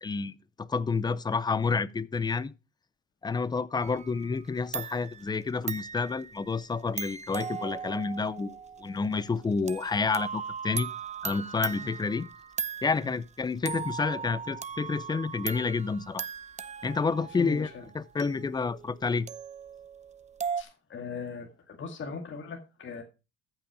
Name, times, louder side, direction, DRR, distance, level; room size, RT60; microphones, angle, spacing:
voice 1, 0.0-2.5 3.2-10.9 11.2-12.3 12.8-16.3 16.8-17.7 17.9-19.3, left 4 dB, 15° left, 0.5 m, -29 dB
sound 1, 3.8-4.5 4.7-13.3 13.6-20.6, right 6 dB, 20° right, 0.7 m, -38 dB
voice 2, 17.4-17.8 20.6-23.0, left 4 dB, 35° left, 2.0 m, -39 dB
14.0 x 6.0 x 4.9 m
cardioid pair, 110°, 32 cm